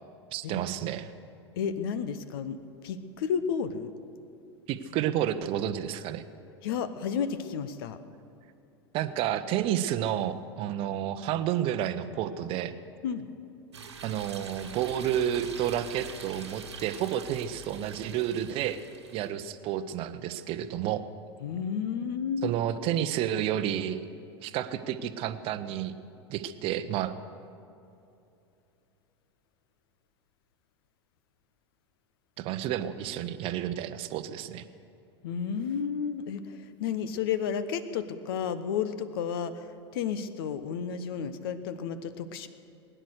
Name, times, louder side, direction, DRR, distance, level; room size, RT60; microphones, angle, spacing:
voice 1, 0.3-1.1 4.7-6.2 8.9-12.7 14.0-18.8 19.1-21.1 22.4-24.0 24.4-25.9 26.3-27.1 32.4-34.6, right 11 dB, 40° right, 11 dB, 0.8 m, -30 dB
voice 2, 1.6-2.6 2.8-3.9 6.6-8.0 13.0-13.3 21.4-22.5 35.2-39.7 39.9-42.5, left 7 dB, 55° left, 13 dB, 0.9 m, -32 dB
sound 1, 13.7-19.3, right 5 dB, 75° right, 1.5 m, -44 dB
20.5 x 10.0 x 6.6 m, 2.7 s
figure-of-eight pair, 85°, 14 cm